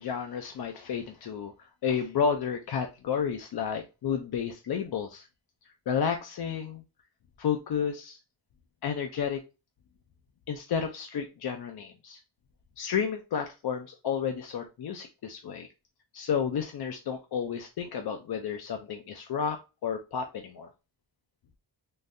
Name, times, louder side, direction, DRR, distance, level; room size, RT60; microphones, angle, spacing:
voice 1, 0.0-1.5 1.8-5.3 5.9-6.8 7.4-8.2 8.8-9.4 10.5-12.2 12.8-15.7 16.1-20.7, left 7 dB, 55° left, 4 dB, 0.6 m, -31 dB
3.8 x 2.7 x 2.5 m, 0.28 s
cardioid pair, 80°, 45 cm